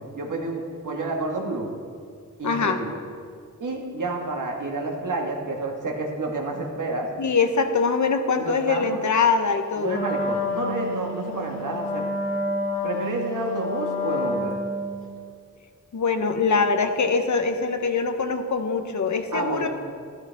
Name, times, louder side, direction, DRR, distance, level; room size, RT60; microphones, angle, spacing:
voice 1, 0.1-1.7 2.4-2.9 3.6-7.1 8.4-9.0 9.8-12.1 12.3-12.4 12.8-14.6 19.3-19.7, right 2 dB, 75° right, 0 dB, 1.6 m, -30 dB
voice 2, 2.4-2.8 7.2-10.0 15.9-19.7, left 4 dB, 65° left, 7 dB, 0.9 m, -23 dB
Wind instrument woodwind instrument, 9.9-15.0, left 2 dB, 45° left, 2.2 m, -28 dB
13.0 x 12.0 x 3.5 m, 2.2 s
wide cardioid pair, 105°, 31 cm